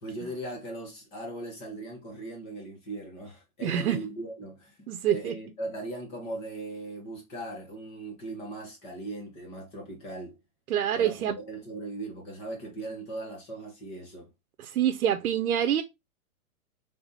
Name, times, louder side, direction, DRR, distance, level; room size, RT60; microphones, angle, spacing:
voice 1, 0.0-4.8 5.1-10.4 10.9-14.3, right 2 dB, 15° left, 0.9 m, -39 dB
voice 2, 3.6-4.0 4.9-5.3 10.7-11.4 14.6-15.8, right 10 dB, 85° right, 0.8 m, -26 dB
3.5 x 3.3 x 3.9 m
hypercardioid pair, 170°, 43 cm